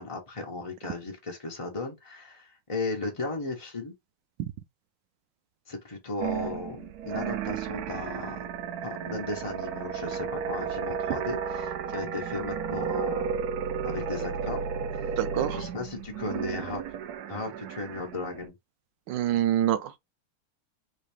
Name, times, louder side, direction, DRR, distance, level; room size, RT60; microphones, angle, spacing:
voice 1, 0.0-3.9 5.7-8.5 8.8-13.3 13.8-14.7 14.9-16.8 17.3-18.5, left 3 dB, 60° left, 0.3 m, -36 dB
sound 1, 6.2-18.5, right 7 dB, 90° right, 0.8 m, -33 dB
voice 2, 15.2-15.6 19.1-20.0, right 12 dB, 75° right, 1.1 m, -26 dB
3.9 x 2.7 x 3.5 m
omnidirectional pair, 2.3 m